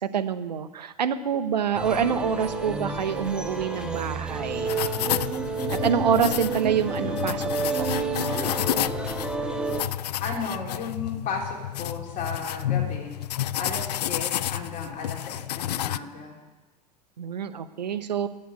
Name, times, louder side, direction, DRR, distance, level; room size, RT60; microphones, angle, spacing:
voice 1, 0.0-4.8 5.7-7.9 17.2-18.3, right 7 dB, 80° right, 11 dB, 0.8 m, -26 dB
sound 1, 1.7-9.8, right 3 dB, 5° right, 1.5 m, -30 dB
sound 2, 4.6-16.0, left 12 dB, 70° left, 0.4 m, -30 dB
voice 2, 10.2-13.1 13.6-16.4, left 5 dB, 40° left, 0 dB, 3.4 m, -34 dB
9.7 x 8.3 x 9.3 m, 1.1 s
figure-of-eight pair, 90°, 21 cm